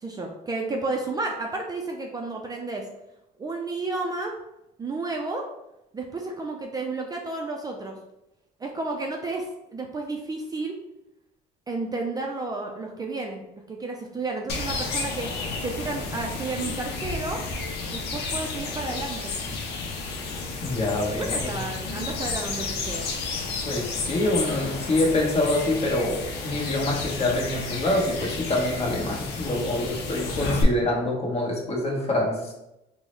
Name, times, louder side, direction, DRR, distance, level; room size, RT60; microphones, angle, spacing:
voice 1, 0.0-2.9 3.4-4.3 4.8-5.5 5.9-8.0 8.6-10.8 11.7-13.4 13.7-15.3 15.6-17.4 17.9-19.3 21.0-23.1, right 3 dB, 20° right, 1 dB, 0.4 m, -32 dB
sound 1, 14.5-30.6, left 3 dB, 75° left, 0.6 m, -32 dB
voice 2, 20.6-21.6 23.6-32.5, left 1 dB, 40° left, -1 dB, 1.1 m, -26 dB
3.7 x 2.1 x 3.1 m, 0.89 s
cardioid pair, 110°, 17 cm